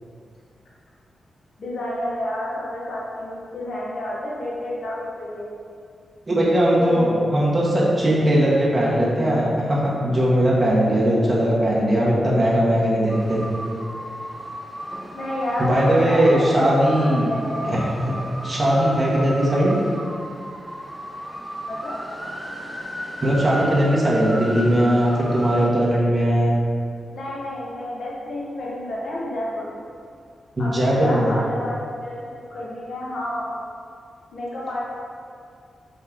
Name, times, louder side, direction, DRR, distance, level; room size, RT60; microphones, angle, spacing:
voice 1, 1.6-5.5 6.7-7.3 11.1-11.4 15.1-17.7 21.7-22.0 27.1-29.8 30.6-32.2 32.5-33.5 34.3-34.9, left 1 dB, 65° left, -6 dB, 1.3 m, -29 dB
voice 2, 6.3-13.4 15.6-17.3 17.6-18.1 18.4-19.8 23.2-26.5 30.6-31.3, right 1 dB, 25° right, -6 dB, 1.7 m, -19 dB
sound 1, 13.1-25.7, equal, 5° right, 0.7 m, -34 dB
6.2 x 5.4 x 3.9 m, 2.3 s
wide cardioid pair, 100°, 0 cm